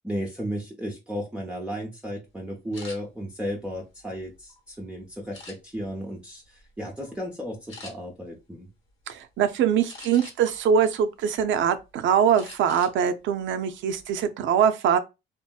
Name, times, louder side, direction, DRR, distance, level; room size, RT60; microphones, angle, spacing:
voice 1, 0.0-8.7, equal, 5° right, 0.6 m, -34 dB
sound 1, 2.7-3.0 3.6-4.6 5.3-5.9 6.4-6.7 7.0-7.2 7.7-7.9 9.9-10.6 11.1-11.8 12.3-13.0 13.3-13.5 13.9-14.3, left 3 dB, 75° left, 1.2 m, -44 dB
voice 2, 9.1-15.0, right 8 dB, 75° right, 0.5 m, -23 dB
2.8 x 2.5 x 2.2 m
cardioid pair, 90°, 20 cm